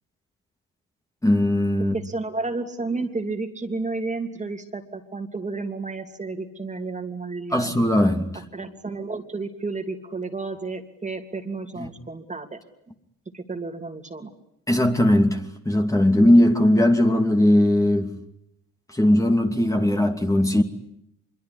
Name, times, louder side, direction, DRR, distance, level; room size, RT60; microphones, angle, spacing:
voice 1, 1.2-1.9 7.5-8.4 11.8-11.9 14.7-15.4 15.6-18.1 18.9-20.6, left 1 dB, 10° left, 2.7 m, -19 dB
voice 2, 1.9-7.7 8.5-12.6 13.3-14.3, right 3 dB, 25° right, 2.9 m, -31 dB
25.0 x 23.5 x 9.8 m
cardioid pair, 90°, 30 cm